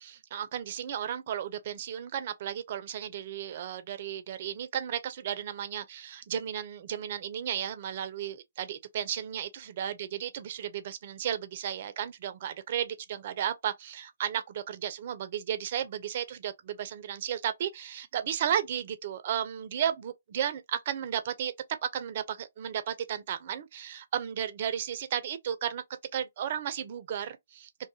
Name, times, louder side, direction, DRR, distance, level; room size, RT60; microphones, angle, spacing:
voice 1, 0.0-21.5 21.8-25.8 26.1-27.7, right 9 dB, 45° right, 0.5 m, -34 dB
2.6 x 2.3 x 2.6 m
figure-of-eight pair, 135°, 0 cm